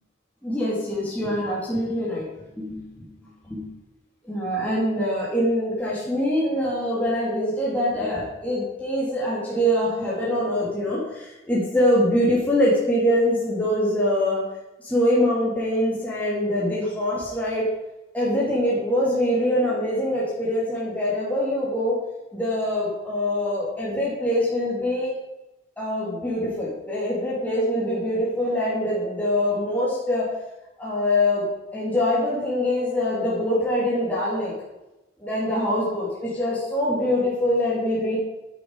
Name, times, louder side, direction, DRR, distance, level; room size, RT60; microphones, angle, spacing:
voice 1, 0.4-2.2 2.6-3.1 3.5-3.7 4.3-14.5 14.8-17.7 18.1-22.0 22.3-25.1 25.8-30.3 30.8-31.5 31.7-34.5 35.2-38.2, left 1 dB, 10° left, -7 dB, 3.2 m, -24 dB
11.0 x 10.5 x 4.9 m, 1.0 s
head